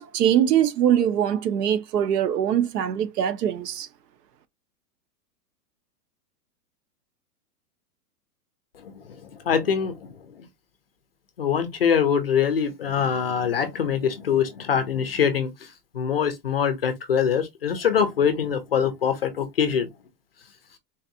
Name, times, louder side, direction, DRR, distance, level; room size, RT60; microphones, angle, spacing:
voice 1, 0.0-3.9, right 10 dB, 80° right, 0.8 m, -22 dB
voice 2, 8.8-10.1 10.4-10.5 11.4-19.9, left 7 dB, 40° left, 0.4 m, -24 dB
3.9 x 2.6 x 2.6 m
supercardioid pair, 180°, 47 cm